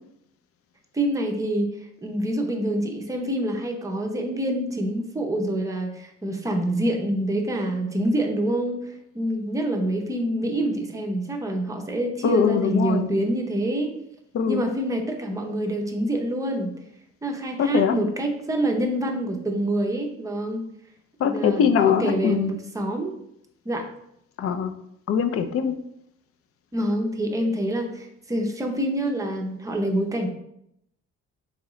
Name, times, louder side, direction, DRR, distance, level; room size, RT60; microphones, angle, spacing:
voice 1, 0.9-13.9 14.5-16.7 17.2-20.6 21.2-23.1 23.7-23.9 26.7-30.3, right 1 dB, 10° right, 2 dB, 0.6 m, -26 dB
voice 2, 12.2-13.1 14.3-14.6 17.6-17.9 21.2-22.5 24.4-24.7 25.1-25.8, left 7 dB, 50° left, 8 dB, 0.4 m, -22 dB
3.6 x 3.0 x 3.0 m, 0.77 s
cardioid pair, 90°, 30 cm